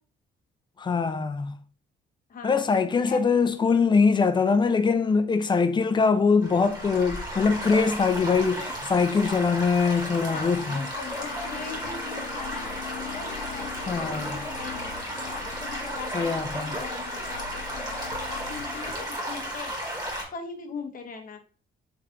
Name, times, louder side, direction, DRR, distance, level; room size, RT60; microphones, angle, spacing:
voice 1, 0.8-1.5 2.4-10.8 13.9-14.3 16.1-16.7, left 5 dB, 25° left, 0.4 m, -23 dB
voice 2, 2.3-3.2 8.5-8.7 10.3-12.7 13.0-14.9 15.3-19.7 20.3-21.4, left 5 dB, 45° left, 0.8 m, -40 dB
Stream / Gurgling / Trickle dribble, 6.4-20.2, equal, 20° right, 1.3 m, -34 dB
sound 1, 11.1-18.9, left 8 dB, 90° left, 0.5 m, -41 dB
3.5 x 3.2 x 2.5 m
cardioid pair, 90°, 20 cm